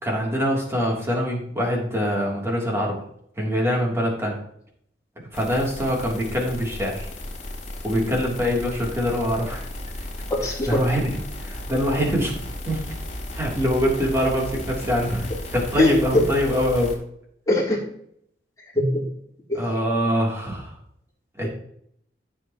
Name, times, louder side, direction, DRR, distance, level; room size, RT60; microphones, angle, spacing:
voice 1, 0.0-2.9 3.4-4.4 5.3-7.1 7.8-9.7 10.7-12.8 13.3-17.0 19.5-20.7 21.4-21.5, equal, 15° right, -3 dB, 3.3 m, -24 dB
sound 1, 5.3-16.9, left 1 dB, 40° left, 4.5 m, -35 dB
voice 2, 10.3-10.8 15.8-16.2 17.5-17.8 18.8-19.1 19.5-19.6 21.4-21.5, left 1 dB, 20° left, -4 dB, 3.7 m, -21 dB
14.5 x 7.6 x 3.1 m, 0.69 s
head